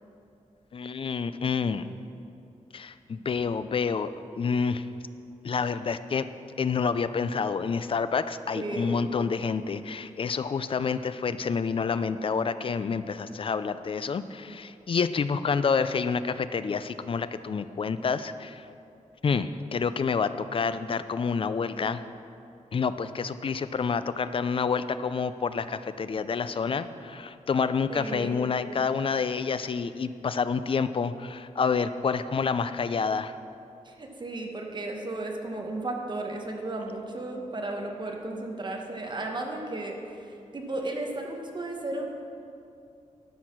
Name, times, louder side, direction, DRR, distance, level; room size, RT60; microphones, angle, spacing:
voice 1, 0.7-1.8 2.7-4.8 5.4-6.3 6.6-18.6 19.2-22.0 22.7-33.4, left 5 dB, 40° left, 13 dB, 0.4 m, -28 dB
voice 2, 8.5-9.1 27.9-28.4 33.8-42.1, right 2 dB, 35° right, 1 dB, 1.3 m, -34 dB
12.0 x 6.4 x 6.0 m, 2.6 s
wide cardioid pair, 140°, 14 cm